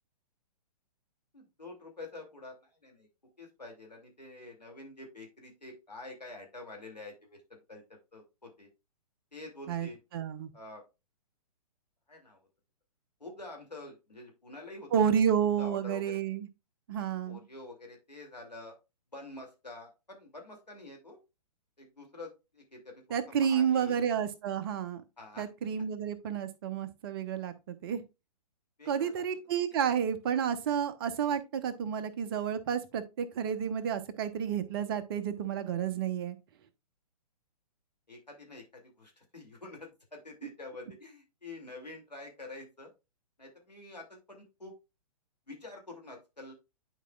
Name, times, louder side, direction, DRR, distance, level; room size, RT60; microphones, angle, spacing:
voice 1, 1.3-3.1 3.4-7.8 8.1-8.7 9.3-10.0 10.5-10.8 12.1-12.4 13.2-15.3 15.6-16.2 17.3-18.7 19.1-21.2 21.8-24.0 25.2-25.5 28.8-29.2 29.7-29.8 38.1-42.9 43.4-44.7 45.5-46.5, left 2 dB, 85° left, 2.6 m, -47 dB
voice 2, 9.7-10.5 14.9-16.5 16.9-17.4 23.1-25.0 25.4-28.0 28.9-36.4, right 8 dB, 35° right, 0.8 m, -30 dB
10.0 x 4.7 x 2.3 m
figure-of-eight pair, 120°, 21 cm